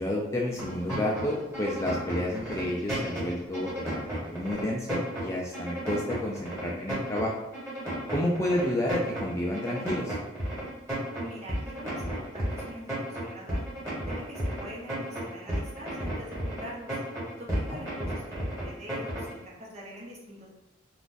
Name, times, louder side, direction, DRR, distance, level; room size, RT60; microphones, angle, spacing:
voice 1, 0.0-7.3 8.1-10.2 17.7-17.8, left 1 dB, 15° left, -2 dB, 0.3 m, -30 dB
sound 1, 0.6-19.4, right 1 dB, 15° right, 1.3 m, -33 dB
voice 2, 11.2-13.7 14.0-20.5, equal, 35° right, -4 dB, 0.9 m, -44 dB
2.5 x 2.4 x 3.8 m, 0.97 s
head